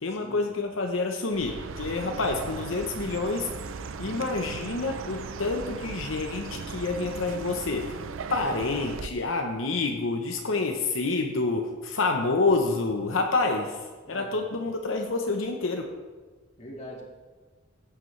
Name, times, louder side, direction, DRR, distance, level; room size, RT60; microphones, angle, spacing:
voice 1, 0.0-3.5 4.0-8.0 8.3-15.9, left 3 dB, 80° left, 3 dB, 0.8 m, -28 dB
Chirp tweet, 1.3-9.1, right 5 dB, 85° right, 0.5 m, -37 dB
voice 2, 14.1-14.7 16.6-17.0, equal, 35° left, -2 dB, 2.2 m, -43 dB
15.0 x 8.1 x 3.2 m, 1.4 s
head